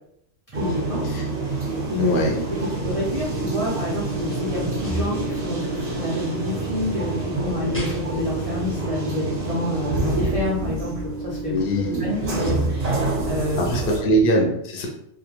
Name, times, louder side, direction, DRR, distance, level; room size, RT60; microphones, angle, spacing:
sound 1, 0.5-14.0, right 2 dB, 40° right, 0.6 m, -27 dB
voice 1, 0.5-2.2 2.8-11.6 12.0-13.6 13.9-14.0, left 1 dB, 70° right, -5 dB, 0.3 m, -29 dB
voice 2, 2.0-2.4 11.5-12.1 13.6-14.9, right 1 dB, 60° left, 0 dB, 0.6 m, -22 dB
sound 2, 3.7-5.7 6.5-8.5 10.8-10.9 11.3-13.3 13.8-13.9, right 1 dB, 20° left, 0.4 m, -35 dB
2.3 x 2.1 x 3.0 m, 0.75 s
omnidirectional pair, 1.3 m